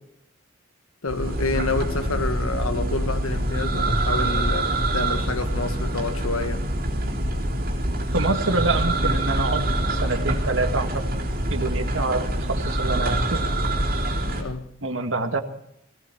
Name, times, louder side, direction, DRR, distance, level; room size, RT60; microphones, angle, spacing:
voice 1, 1.0-6.7 14.3-14.7, left 3 dB, 90° left, 1.4 m, -29 dB
sound 1, 1.1-14.4, right 1 dB, 45° right, 3.6 m, -25 dB
voice 2, 8.1-11.1 11.5-13.4 14.8-15.4, right 2 dB, 70° right, 1.8 m, -26 dB
18.0 x 17.0 x 4.6 m
head